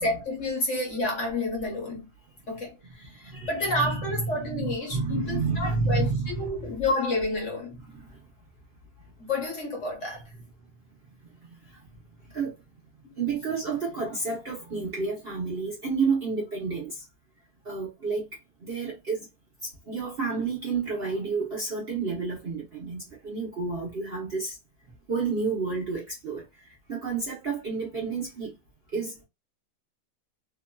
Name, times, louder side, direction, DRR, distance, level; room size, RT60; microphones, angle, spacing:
voice 1, 0.0-2.0 2.5-7.8 9.2-10.2, left 2 dB, 55° left, 1.1 m, -30 dB
voice 2, 3.0-6.7 7.8-8.2 10.0-10.1 11.4-11.8 12.3-12.6 13.2-17.0 17.6-18.3 18.6-19.3 19.6-24.6 25.1-28.5 28.9-29.2, right 4 dB, 50° right, 0.8 m, -30 dB
2.8 x 2.5 x 2.2 m
omnidirectional pair, 1.8 m